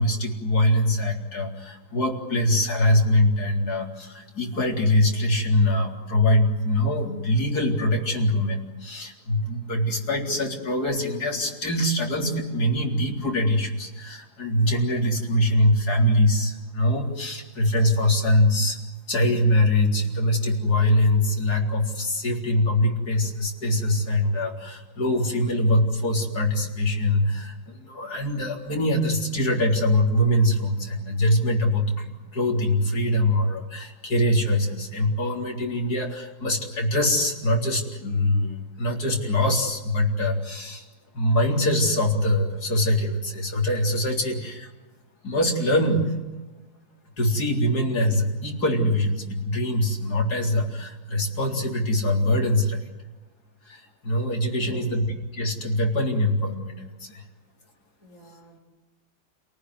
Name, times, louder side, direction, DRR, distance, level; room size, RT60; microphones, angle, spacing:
voice 1, 0.0-18.8 19.1-40.8 41.1-44.7 45.2-46.1 47.2-52.8 53.6-55.1 55.3-57.2, left 1 dB, 65° left, 1 dB, 4.5 m, -23 dB
voice 2, 54.5-55.0 58.0-58.6, left 1 dB, 45° left, 0 dB, 6.6 m, -45 dB
29.5 x 19.0 x 9.7 m, 1.2 s
omnidirectional pair, 1.8 m